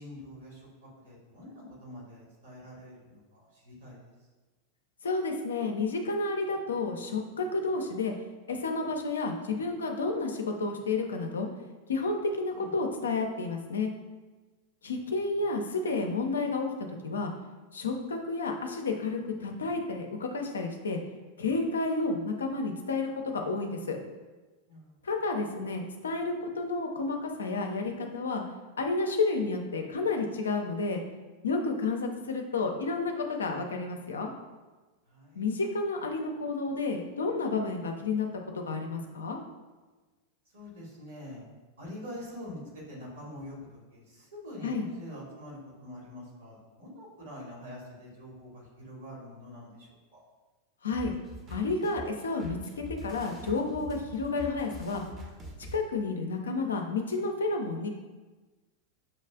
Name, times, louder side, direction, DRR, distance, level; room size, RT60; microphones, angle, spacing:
voice 1, 0.0-3.9 12.5-12.8 24.7-24.9 35.1-35.4 40.5-41.4 41.8-50.2, left 1 dB, 60° right, -5 dB, 1.4 m, -45 dB
voice 2, 5.0-8.1 8.5-11.5 11.9-13.9 14.8-16.7 17.0-17.3 17.7-21.0 21.4-24.0 25.0-28.4 28.8-31.0 31.4-34.3 35.4-38.3 38.5-39.4 44.6-44.9 50.8-51.1 51.5-55.0 55.7-57.9, left 3 dB, 70° left, 3 dB, 0.4 m, -31 dB
sound 1, 50.9-55.8, equal, 25° right, 0.7 m, -44 dB
6.2 x 2.3 x 2.3 m, 1.3 s
figure-of-eight pair, 90°, 0 cm